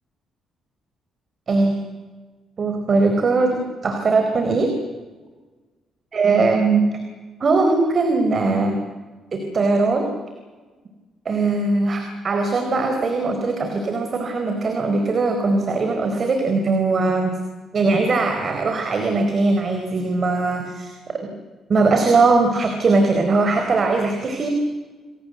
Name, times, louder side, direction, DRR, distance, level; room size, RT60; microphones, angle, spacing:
voice 1, 2.6-4.7 6.1-6.9 7.4-8.8 9.3-10.1 11.2-17.3 17.7-21.3 21.7-24.5, right 3 dB, 45° right, 5 dB, 4.4 m, -20 dB
29.5 x 22.5 x 8.0 m, 1.3 s
cardioid pair, 90°, 0 cm